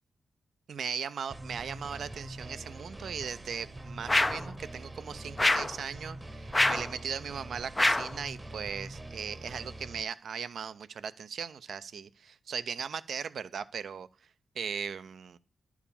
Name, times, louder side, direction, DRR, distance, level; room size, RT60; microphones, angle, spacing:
voice 1, 0.7-14.1 14.6-15.4, right 7 dB, 70° right, 13 dB, 0.5 m, -38 dB
sound 1, 1.3-10.0, right 1 dB, 25° right, 0.9 m, -44 dB
sound 2, 4.1-4.5 5.4-5.8 6.5-6.9 7.8-8.2, left 2 dB, 20° left, 0.4 m, -25 dB
11.0 x 4.8 x 7.0 m, 0.36 s
cardioid pair, 65°, 0 cm